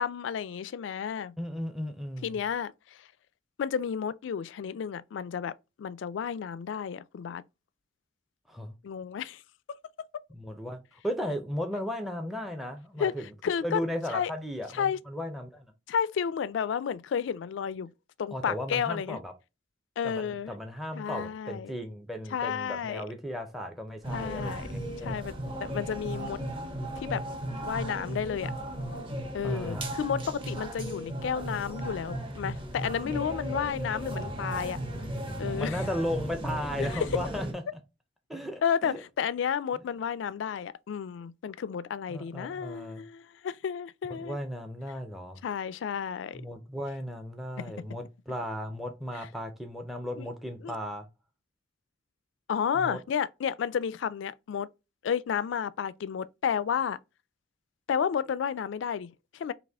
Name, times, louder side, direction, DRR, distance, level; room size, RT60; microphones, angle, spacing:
voice 1, 0.0-1.3 2.2-2.7 3.6-5.5 5.8-7.4 8.8-9.4 13.0-13.1 13.4-13.8 14.1-14.3 14.7-15.0 15.9-17.9 18.2-19.2 20.0-20.5 20.9-21.7 22.3-23.0 24.1-24.7 25.0-25.3 25.6-26.4 27.0-27.2 27.6-28.5 29.3-34.8 35.4-35.8 36.8-37.0 38.6-44.4 45.4-46.4 47.6-47.8 50.2-50.3 50.6-50.7 52.5-54.7 55.0-57.0 57.9-59.5, left 7 dB, 75° left, 0.3 m, -31 dB
voice 2, 1.4-2.4 8.5-8.7 10.3-13.3 13.6-15.7 18.3-19.3 20.0-25.4 29.4-29.8 35.6-37.6 38.3-39.0 42.1-43.0 44.1-45.4 46.3-51.1 52.7-53.0, equal, ahead, 0.5 m, -36 dB
sound 1, 24.0-37.5, right 1 dB, 30° right, 0.9 m, -36 dB
4.1 x 2.9 x 3.4 m
head